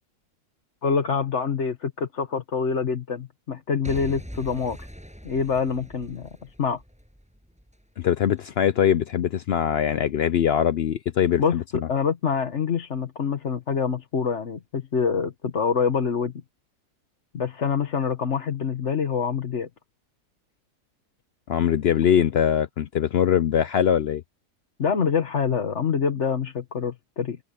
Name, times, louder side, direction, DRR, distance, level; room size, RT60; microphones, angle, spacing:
voice 1, 0.8-4.9 5.2-6.3 6.6-6.8 11.4-16.3 17.3-19.7 24.8-27.4, left 6 dB, 50° left, 1.5 m, -26 dB
Boom / Shatter / Crushing, 3.8-7.8 8.4-8.5, equal, 5° right, 7.5 m, -41 dB
voice 2, 8.0-11.6 21.5-24.2, left 9 dB, 75° left, 0.5 m, -22 dB
omnidirectional pair, 1.7 m